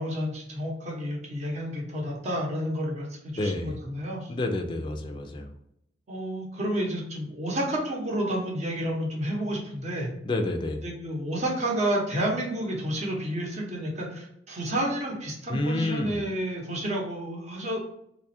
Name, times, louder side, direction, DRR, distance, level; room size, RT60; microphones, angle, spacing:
voice 1, 0.0-4.3 6.1-10.1 10.8-17.8, right 1 dB, 40° right, -1 dB, 0.8 m, -30 dB
voice 2, 3.4-3.8 4.3-5.5 10.2-10.8 15.5-16.3, left 2 dB, 25° left, 3 dB, 0.4 m, -29 dB
3.0 x 2.3 x 4.2 m, 0.76 s
head